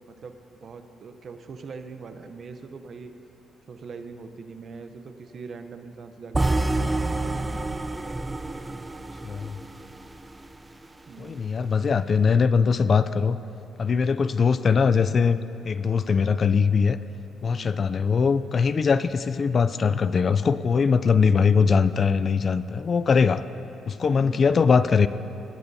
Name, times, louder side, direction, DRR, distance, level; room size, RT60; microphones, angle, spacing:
voice 1, 0.0-3.1 3.7-7.6 11.1-11.5 17.4-17.9 24.0-24.4, right 4 dB, 50° right, 8 dB, 0.7 m, -42 dB
sound 1, 6.3-10.5, right 2 dB, 20° right, 0.5 m, -28 dB
voice 2, 9.2-9.6 11.2-13.4 13.8-15.4 15.6-17.0 17.4-23.4 23.9-25.1, left 5 dB, 45° left, 14 dB, 0.4 m, -21 dB
17.5 x 13.0 x 2.7 m, 3.0 s
cardioid pair, 90°, 0 cm